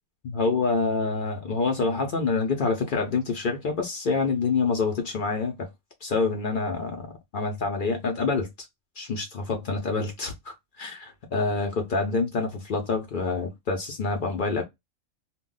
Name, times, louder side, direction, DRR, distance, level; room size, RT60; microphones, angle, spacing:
voice 1, 0.2-5.7 6.0-8.5 9.0-14.6, left 4 dB, 60° left, 0.5 m, -27 dB
2.2 x 2.1 x 3.7 m
omnidirectional pair, 1.4 m